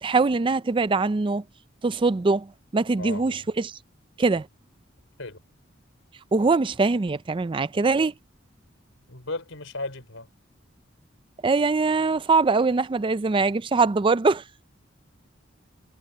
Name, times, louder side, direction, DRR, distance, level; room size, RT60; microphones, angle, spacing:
voice 1, 0.0-1.4 1.8-3.8 4.2-4.5 6.3-8.1 11.4-14.4, right 3 dB, 25° right, 0.4 m, -22 dB
voice 2, 3.0-3.5 5.2-5.4 9.1-10.3, left 2 dB, 80° left, 5.1 m, -35 dB
head